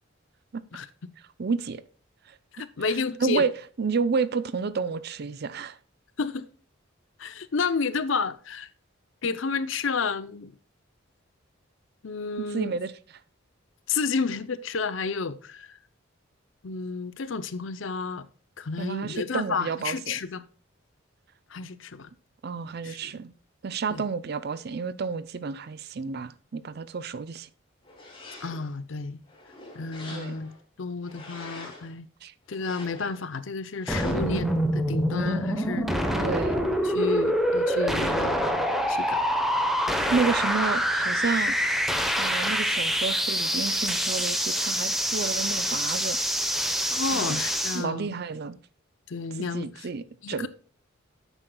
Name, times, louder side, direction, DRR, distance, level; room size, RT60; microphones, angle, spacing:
voice 1, 1.4-1.8 3.2-3.5 3.8-5.8 12.4-12.9 18.8-20.2 22.4-23.3 23.6-27.5 30.1-30.4 32.2-32.3 36.1-36.7 39.8-41.5 42.2-46.2 47.1-47.4 47.7-48.6 49.4-50.5, right 5 dB, 50° right, 0.5 m, -30 dB
voice 2, 2.5-3.4 6.2-6.5 7.2-8.7 9.2-10.5 12.0-12.8 13.9-15.8 16.6-18.2 18.6-20.4 21.5-22.1 22.8-23.1 23.9-24.0 28.4-29.2 29.7-30.5 30.8-32.1 32.5-36.1 36.8-38.5 38.9-39.2 46.9-48.1 49.1-49.9 50.2-50.5, left 4 dB, 70° left, 0.6 m, -31 dB
sound 1, 27.8-28.7 29.2-30.6 31.0-31.9 32.5-33.3 33.8-34.4, left 2 dB, 25° left, 3.0 m, -45 dB
sound 2, 33.9-47.8, equal, ahead, 0.9 m, -26 dB
9.7 x 8.1 x 2.3 m
head